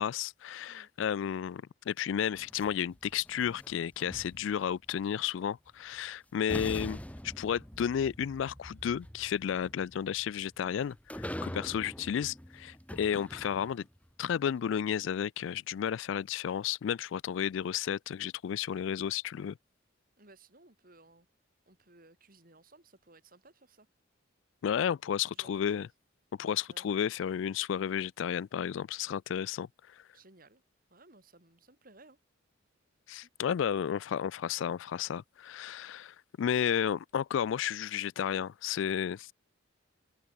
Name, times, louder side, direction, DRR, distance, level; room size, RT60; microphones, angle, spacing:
voice 1, 0.0-7.0 7.2-13.8 14.2-19.6 24.6-25.9 26.4-29.7 33.1-39.3, left 8 dB, 70° left, 0.3 m, -32 dB
sound 1, 2.3-4.7 5.9-6.0 6.5-14.0, equal, 5° left, 2.7 m, -44 dB
voice 2, 20.2-21.3 21.7-23.9 25.3-25.9 26.4-27.0 30.1-30.6 30.9-32.2 33.2-33.3, right 2 dB, 45° right, 4.0 m, -59 dB
head